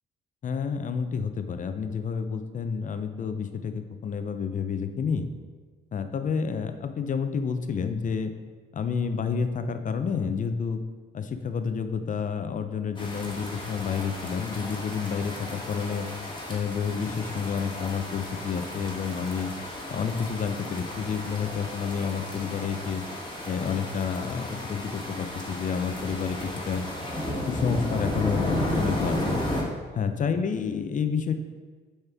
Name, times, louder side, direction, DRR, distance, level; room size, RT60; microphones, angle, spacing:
voice 1, 0.4-5.3 5.9-8.3 8.7-10.8 11.1-16.1 16.5-19.5 19.9-23.0 23.4-26.8 27.5-29.4 29.9-31.3, left 6 dB, 40° left, 8 dB, 0.5 m, -29 dB
sound 1, 13.0-29.6, left 1 dB, 25° left, 1.4 m, -34 dB
6.6 x 4.3 x 3.5 m, 1.4 s
cardioid pair, 90°, 20 cm